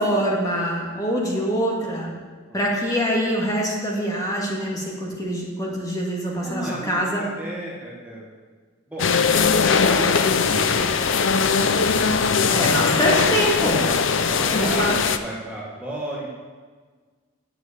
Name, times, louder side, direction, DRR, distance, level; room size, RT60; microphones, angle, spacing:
voice 1, 0.0-2.1 2.5-7.2 12.5-13.8 14.5-14.9, equal, 15° left, -3 dB, 1.9 m, -24 dB
voice 2, 6.4-8.3 8.9-9.1 9.8-10.2 10.5-12.2 13.8-16.3, right 1 dB, 5° right, -6 dB, 1.5 m, -34 dB
sound 1, 9.0-15.2, left 5 dB, 60° left, 0.5 m, -20 dB
7.9 x 7.5 x 8.3 m, 1.5 s
head